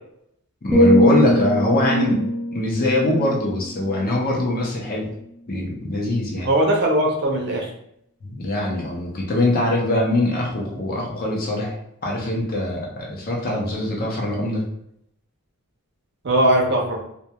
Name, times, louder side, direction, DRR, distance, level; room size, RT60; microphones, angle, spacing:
voice 1, 0.6-5.1 5.5-6.5 8.2-11.8 12.0-14.6, left 1 dB, 40° left, -2 dB, 0.6 m, -23 dB
sound 1, 0.7-4.7 5.1-5.4, equal, ahead, 0.4 m, -21 dB
voice 2, 6.4-7.7 16.2-17.0, right 1 dB, 50° right, 0 dB, 0.5 m, -19 dB
2.3 x 2.3 x 2.8 m, 0.74 s
head